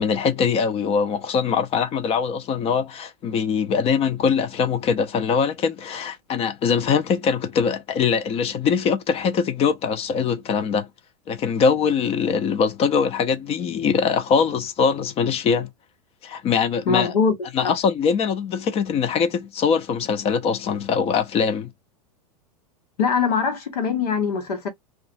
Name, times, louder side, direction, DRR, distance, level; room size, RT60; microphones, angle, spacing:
voice 1, 0.0-10.9 11.3-15.7 16.2-17.1 17.5-21.7, left 6 dB, 30° left, 0.6 m, -22 dB
voice 2, 16.9-17.7 23.0-24.7, left 5 dB, 75° left, 1.1 m, -22 dB
2.4 x 2.3 x 2.6 m
hypercardioid pair, 105°, 20 cm